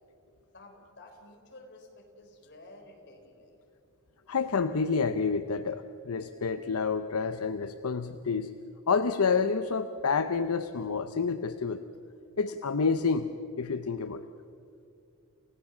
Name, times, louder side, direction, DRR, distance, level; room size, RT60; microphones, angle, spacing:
voice 1, 0.5-3.6, left 2 dB, 50° left, 2 dB, 4.0 m, -52 dB
voice 2, 4.3-8.5 8.9-11.8 12.4-13.3 13.6-14.2, left 5 dB, 80° left, 10 dB, 0.7 m, -28 dB
29.0 x 16.0 x 7.2 m, 2.5 s
head